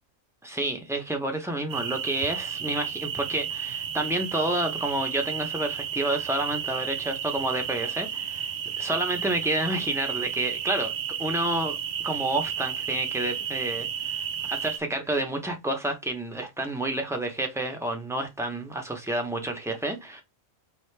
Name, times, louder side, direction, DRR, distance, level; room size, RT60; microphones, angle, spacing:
voice 1, 0.4-10.9 11.2-11.8 12.0-20.2, right 1 dB, 5° right, 0.6 m, -29 dB
sound 1, 1.7-14.8, right 8 dB, 80° right, 0.3 m, -32 dB
4.9 x 2.8 x 3.3 m
omnidirectional pair, 1.3 m